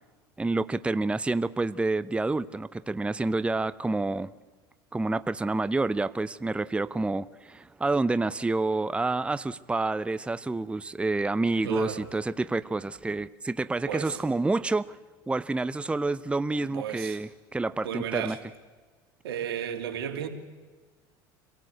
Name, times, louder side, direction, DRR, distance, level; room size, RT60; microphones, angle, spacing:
voice 1, 0.4-4.3 4.9-15.0 15.3-18.4, right 3 dB, 10° right, 16 dB, 0.7 m, -28 dB
voice 2, 11.6-12.1 13.9-14.2 16.6-17.2 17.8-18.4 19.2-20.3, right 9 dB, 85° right, 6 dB, 2.7 m, -33 dB
27.0 x 18.0 x 8.0 m, 1.4 s
hypercardioid pair, 90°, 12 cm